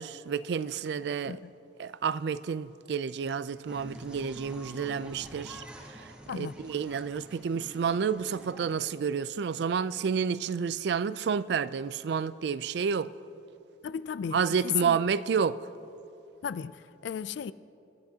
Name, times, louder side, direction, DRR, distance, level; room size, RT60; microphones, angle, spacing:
voice 1, 0.0-1.4 1.8-5.6 5.9-13.1 14.3-15.7, right 6 dB, 65° right, 0.3 m, -30 dB
sound 1, 3.7-8.8, right 1 dB, 5° right, 1.6 m, -47 dB
voice 2, 13.8-15.0 16.4-17.5, left 8 dB, 70° left, 0.3 m, -34 dB
25.5 x 12.5 x 2.8 m
head